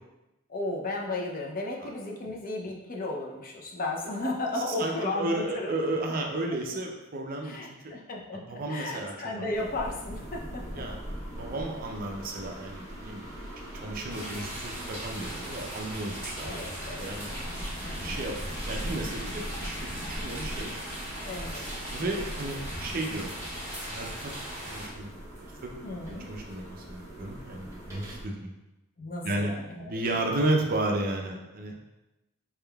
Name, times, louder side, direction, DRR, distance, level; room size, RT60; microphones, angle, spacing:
voice 1, 0.5-5.8 7.4-10.9 16.4-18.1 21.2-21.7 25.8-26.3 29.0-30.0, left 2 dB, 40° left, -1 dB, 0.5 m, -35 dB
voice 2, 4.7-7.6 7.8-7.9 8.3-9.7 10.6-11.0 11.3-13.2 13.7-16.7 17.0-17.3 17.9-18.4 18.7-21.0 21.9-23.3 23.9-24.3 24.7-25.1 25.4-25.5 26.1-28.5 29.2-29.5 29.9-31.7, right 2 dB, 40° right, 2 dB, 0.5 m, -33 dB
sound 1, 9.5-28.3, equal, 15° right, 0.9 m, -41 dB
sound 2, 14.1-24.9, equal, 15° left, 1.4 m, -39 dB
4.3 x 3.5 x 2.3 m, 0.98 s
head